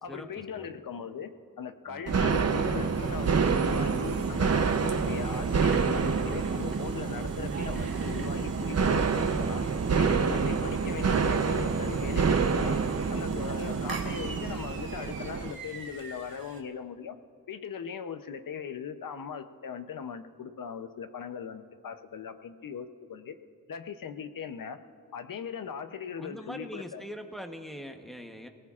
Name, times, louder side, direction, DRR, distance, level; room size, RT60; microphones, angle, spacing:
voice 1, 0.0-1.3 1.6-9.6 10.0-12.8 13.1-17.2 17.5-23.4 23.7-24.8 25.1-27.0, left 7 dB, 70° left, 9 dB, 0.8 m, -39 dB
sound 1, 2.1-15.5, right 5 dB, 45° right, 0.7 m, -27 dB
sound 2, 2.2-16.6, right 3 dB, 80° right, 1.7 m, -45 dB
voice 2, 26.2-28.5, equal, ahead, 4 dB, 0.9 m, -42 dB
28.5 x 18.0 x 2.5 m, 2.3 s
wide cardioid pair, 155°, 34 cm